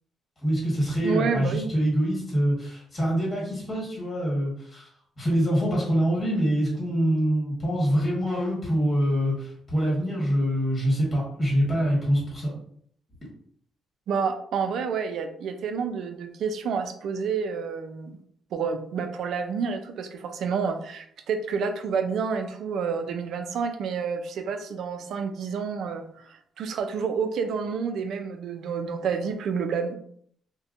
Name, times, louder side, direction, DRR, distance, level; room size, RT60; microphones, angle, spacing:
voice 1, 0.4-4.9 5.2-12.5, equal, 25° left, -5 dB, 1.4 m, -25 dB
voice 2, 1.0-1.7 14.1-18.2 18.5-30.0, right 6 dB, 70° right, 7 dB, 0.3 m, -29 dB
2.7 x 2.1 x 2.5 m, 0.64 s
cardioid pair, 90°, 0 cm